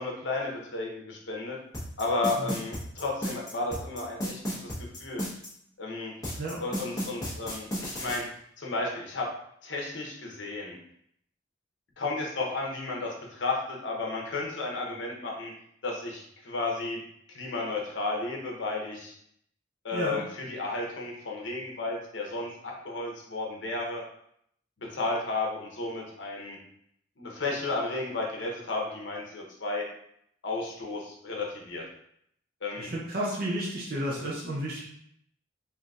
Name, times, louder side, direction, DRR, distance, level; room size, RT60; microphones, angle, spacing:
voice 1, 0.0-1.6 2.0-5.2 5.8-6.1 6.6-8.3 8.6-9.3 9.6-10.8 12.0-15.5 15.8-17.0 17.3-19.1 19.8-24.0 24.8-26.6 27.2-29.8 30.4-31.8 32.6-32.9, left 3 dB, 75° left, -1 dB, 0.8 m, -33 dB
sound 1, 1.7-5.5 6.2-8.2, equal, 20° left, 0.9 m, -33 dB
voice 2, 19.9-20.2 32.8-34.8, right 1 dB, 50° right, -4 dB, 0.6 m, -32 dB
3.8 x 2.7 x 2.4 m, 0.71 s
head